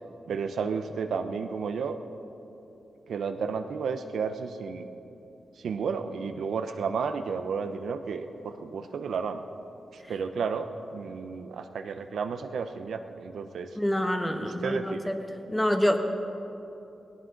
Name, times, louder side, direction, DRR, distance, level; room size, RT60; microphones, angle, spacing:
voice 1, 0.3-2.0 3.1-4.9 5.6-9.4 9.9-13.7 14.4-15.1, right 5 dB, 85° right, 7 dB, 0.8 m, -32 dB
voice 2, 13.8-15.1 15.5-16.0, equal, 10° left, 5 dB, 1.4 m, -26 dB
17.5 x 17.0 x 3.9 m, 2.9 s
cardioid pair, 70°, 0 cm